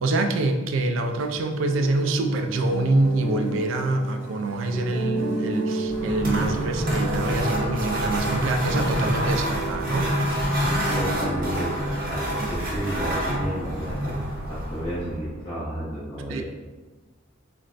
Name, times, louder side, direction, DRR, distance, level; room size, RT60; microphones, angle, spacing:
voice 1, 0.0-10.1 12.4-12.5 16.3-16.4, right 2 dB, 70° right, 6 dB, 0.3 m, -25 dB
Buzz, 1.1-11.5, right 1 dB, 10° right, 0.8 m, -42 dB
sound 1, 1.7-12.6, right 2 dB, 75° left, 0.8 m, -33 dB
sound 2, 5.9-15.3, equal, 45° right, 0.7 m, -27 dB
voice 2, 10.9-16.4, right 1 dB, 20° left, -12 dB, 0.8 m, -32 dB
3.9 x 2.1 x 2.4 m, 1.2 s
head